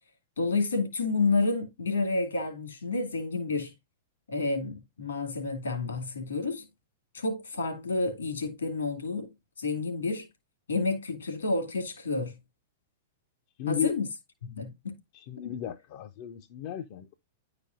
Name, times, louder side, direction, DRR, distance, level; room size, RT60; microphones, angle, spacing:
voice 1, 0.4-3.7 4.3-6.7 7.1-10.3 10.7-12.4 13.7-14.1 14.4-15.0 15.4-15.5, left 3 dB, 80° left, 2.0 m, -30 dB
voice 2, 13.6-14.0 15.1-17.1, left 9 dB, 50° left, 0.5 m, -34 dB
10.0 x 4.9 x 2.5 m
figure-of-eight pair, 105°, 0 cm